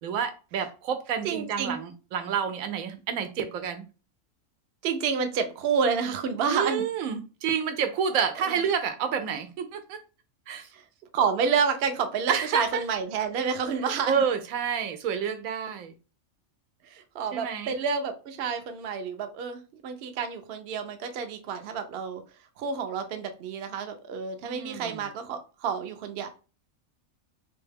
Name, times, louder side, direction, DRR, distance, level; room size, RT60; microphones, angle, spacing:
voice 1, 0.0-3.8 6.5-10.0 10.5-10.7 12.3-12.8 14.1-15.9 17.3-17.7 24.4-25.0, right 7 dB, 85° right, 1.0 m, -29 dB
voice 2, 1.2-1.8 4.8-6.9 7.4-7.5 8.5-8.6 10.7-10.8 11.1-14.2 16.8-22.2 22.6-26.3, right 6 dB, 60° right, 0.7 m, -29 dB
3.4 x 2.2 x 3.3 m
omnidirectional pair, 1.4 m